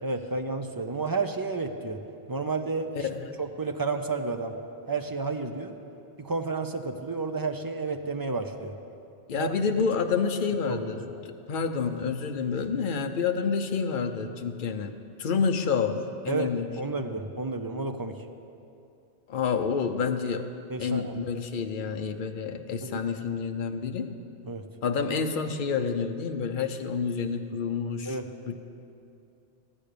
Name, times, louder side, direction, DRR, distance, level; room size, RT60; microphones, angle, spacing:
voice 1, 0.0-2.0 2.3-3.1 3.4-4.5 4.9-5.7 6.2-8.7 9.4-9.5 10.6-11.0 16.3-16.5 16.8-18.2 20.7-21.1 22.8-23.0 24.5-24.6 28.0-28.3, right 3 dB, 25° right, 6 dB, 0.6 m, -31 dB
voice 2, 2.9-3.4 9.3-14.9 15.2-17.1 19.3-20.5 20.8-24.2 24.8-28.2 28.5-28.6, left 5 dB, 55° left, 6 dB, 0.9 m, -29 dB
14.0 x 9.0 x 6.8 m, 2.6 s
omnidirectional pair, 1.1 m